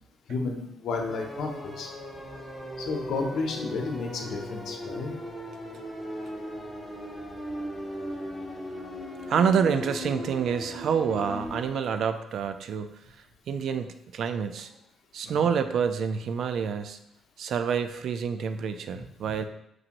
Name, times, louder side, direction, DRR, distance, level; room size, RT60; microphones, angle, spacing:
voice 1, 0.3-1.9 2.8-5.1 15.2-15.4 19.2-19.4, left 4 dB, 75° left, 2 dB, 0.7 m, -32 dB
sound 1, 1.1-11.7, equal, 5° right, 1.3 m, -38 dB
voice 2, 9.3-13.0 13.5-13.9 14.1-14.7 15.1-17.0 17.4-19.4, right 7 dB, 70° right, 9 dB, 0.4 m, -27 dB
6.1 x 2.5 x 2.9 m, 0.78 s
cardioid pair, 90°, 0 cm